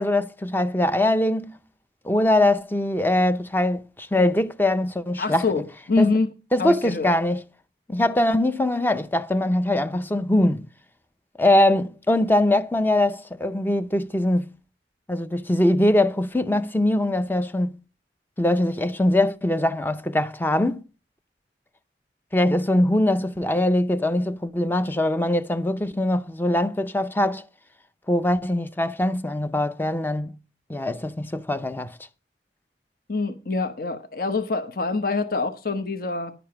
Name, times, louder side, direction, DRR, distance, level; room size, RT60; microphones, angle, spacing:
voice 1, 0.0-1.5 2.0-5.4 6.0-6.1 6.5-7.4 7.9-10.7 11.4-14.5 15.1-17.8 18.4-20.8 22.3-27.4 28.1-30.3 30.7-32.0, left 1 dB, 10° left, 0.6 m, -22 dB
voice 2, 5.2-6.3 6.6-7.1 33.1-36.3, left 3 dB, 50° left, 1.0 m, -25 dB
11.0 x 6.9 x 5.8 m
head